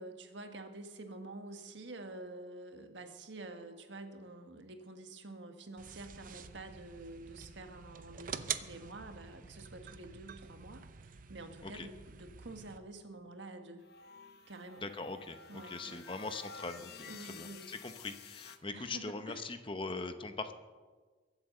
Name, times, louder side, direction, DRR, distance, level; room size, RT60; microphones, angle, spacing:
voice 1, 0.0-13.8 14.5-14.9 15.5-16.1 17.1-17.7 18.7-19.5, right 2 dB, 75° right, 6 dB, 1.5 m, -48 dB
sound 1, 5.8-12.8, right 7 dB, 45° right, 0.7 m, -46 dB
sound 2, 13.8-18.6, left 6 dB, 55° left, 0.9 m, -52 dB
voice 2, 14.8-15.4 15.7-20.5, left 3 dB, 25° left, 8 dB, 0.8 m, -41 dB
22.5 x 8.1 x 6.7 m, 1.4 s
head